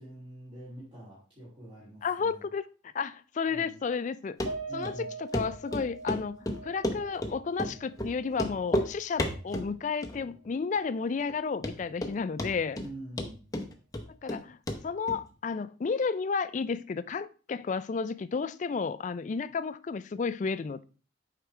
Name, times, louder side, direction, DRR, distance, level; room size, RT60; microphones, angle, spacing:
voice 1, 0.0-2.4 3.5-3.7 4.7-5.1 12.7-13.4, right 1 dB, 30° right, 2.7 m, -45 dB
voice 2, 2.0-4.4 4.7-12.8 14.1-14.6 14.8-20.8, left 5 dB, 40° left, 0.3 m, -32 dB
Run, 4.4-4.5 4.8-4.9 5.3-5.4 5.7-7.3 7.6-7.7 8.0-8.1 8.3-8.9 9.2-9.7 10.0-10.5 10.7-10.8 11.3-11.4 11.6-12.1 12.4-12.9 13.2-14.4 14.7-14.8 15.1-15.2, left 1 dB, 20° left, 0.7 m, -31 dB
Piano, 4.4-8.9 9.3-9.4 9.8-10.0, right 3 dB, 90° right, 3.0 m, -43 dB
7.8 x 4.9 x 3.3 m
head